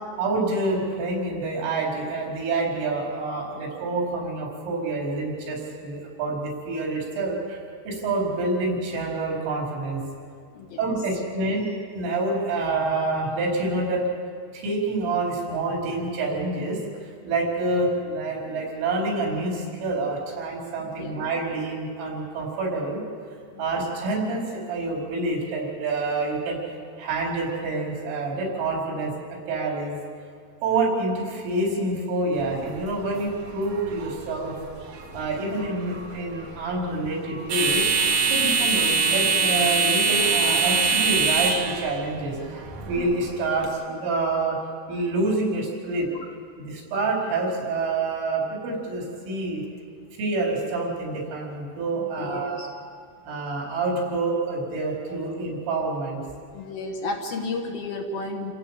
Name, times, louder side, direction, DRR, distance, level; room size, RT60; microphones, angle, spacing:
voice 1, 0.2-7.6 7.9-10.0 10.8-11.7 11.9-14.0 14.5-23.0 23.6-26.6 27.0-30.0 30.6-34.5 35.1-37.9 38.3-42.4 42.9-44.6 44.9-46.1 46.6-49.6 50.2-52.7 53.2-56.2, right 2 dB, 90° right, -1 dB, 7.1 m, -27 dB
sound 1, 32.3-43.7, right 5 dB, 65° right, 1.5 m, -25 dB
voice 2, 38.3-38.7 42.8-42.9 46.1-46.2 52.0-52.7 56.5-58.5, left 3 dB, 65° left, 2 dB, 2.8 m, -33 dB
29.0 x 16.0 x 7.5 m, 2.2 s
omnidirectional pair, 5.5 m